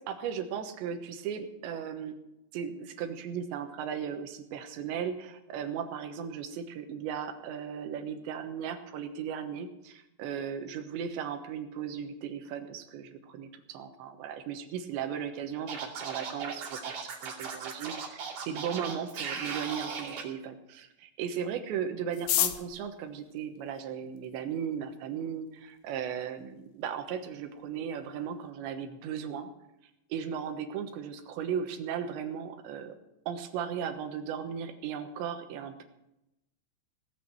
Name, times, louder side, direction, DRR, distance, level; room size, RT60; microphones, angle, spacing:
voice 1, 0.1-2.2 2.5-29.5 30.1-33.0 33.3-35.8, right 8 dB, 80° right, 7 dB, 3.4 m, -36 dB
Scratching (performance technique), 15.7-20.2, right 6 dB, 55° right, 4.3 m, -37 dB
sound 1, 22.1-24.4 25.2-25.3 25.5-25.6 25.8-26.3 26.6-26.7 26.9-27.4 27.7-27.9 28.2-28.5, left 12 dB, 85° left, 3.4 m, -32 dB
17.5 x 8.5 x 7.6 m, 0.88 s
omnidirectional pair, 5.2 m